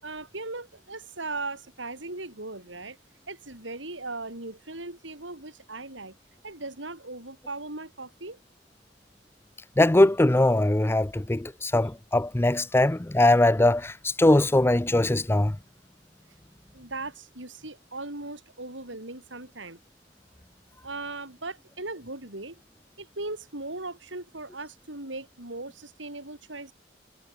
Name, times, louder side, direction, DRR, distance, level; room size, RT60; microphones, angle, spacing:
voice 1, 0.0-3.0 3.3-6.2 6.4-8.4 16.7-19.8 20.8-22.6 23.0-26.7, right 2 dB, 90° right, 7.0 m, -38 dB
voice 2, 9.8-15.6, left 1 dB, 15° left, 0.5 m, -21 dB
head